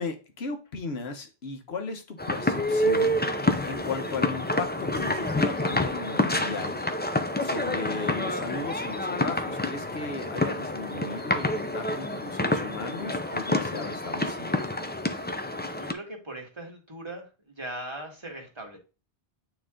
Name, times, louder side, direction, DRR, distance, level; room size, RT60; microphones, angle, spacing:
voice 1, 0.0-3.2 3.6-6.8 7.4-14.6, left 4 dB, 75° left, 6 dB, 1.3 m, -36 dB
sound 1, 2.2-15.9, left 1 dB, 15° left, 0.4 m, -28 dB
voice 2, 15.8-18.8, right 1 dB, 25° right, 1 dB, 1.8 m, -39 dB
9.0 x 3.1 x 3.7 m, 0.31 s
omnidirectional pair, 1.1 m